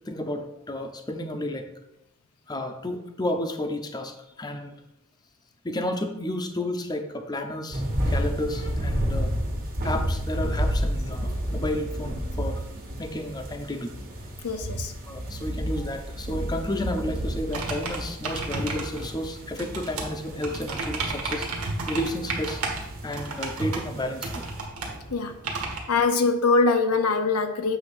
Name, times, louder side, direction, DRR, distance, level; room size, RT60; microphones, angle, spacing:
voice 1, 0.0-1.6 2.5-4.8 5.6-9.3 9.8-12.6 13.0-13.9 15.1-21.5 21.9-22.6 23.0-24.4, left 1 dB, 20° left, 0.6 m, -32 dB
sound 1, 7.7-24.6, equal, 40° right, 1.4 m, -31 dB
voice 2, 14.4-14.9 25.1-25.3 25.9-27.8, left 4 dB, 85° left, 0.7 m, -23 dB
sound 2, 17.5-25.8, right 3 dB, 85° right, 1.6 m, -33 dB
7.9 x 3.4 x 5.9 m
head